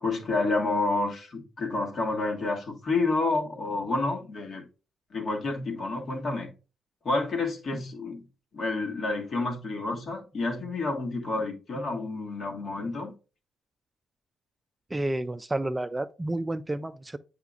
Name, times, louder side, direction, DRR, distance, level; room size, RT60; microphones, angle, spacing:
voice 1, 0.0-4.6 5.1-6.5 7.0-8.2 8.5-13.1, left 3 dB, 50° left, 1.5 m, -29 dB
voice 2, 14.9-17.2, right 1 dB, 15° right, 0.4 m, -30 dB
8.1 x 5.7 x 2.4 m
cardioid pair, 90°, 0 cm